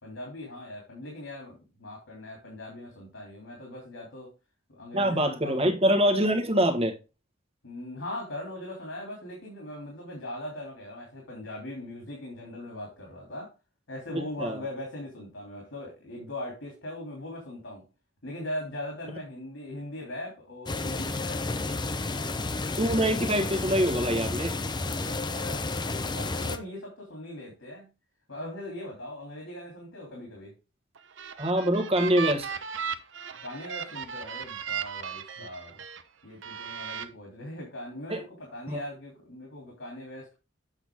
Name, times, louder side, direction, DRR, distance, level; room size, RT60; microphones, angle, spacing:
voice 1, 0.0-4.3 4.7-5.7 7.6-13.5 13.9-17.8 18.2-22.4 24.8-27.9 28.3-30.5 33.4-35.8 36.2-40.4, left 1 dB, 85° left, 2.9 m, -40 dB
voice 2, 4.9-6.9 14.1-14.6 21.6-21.7 22.8-24.5 31.4-32.5 38.1-38.2 38.7-38.8, equal, 30° right, 1.4 m, -25 dB
sound 1, 20.7-26.6, left 3 dB, 20° left, 0.6 m, -31 dB
sound 2, 30.9-36.0 36.4-37.0, right 7 dB, 70° right, 0.8 m, -36 dB
8.1 x 6.1 x 3.6 m
head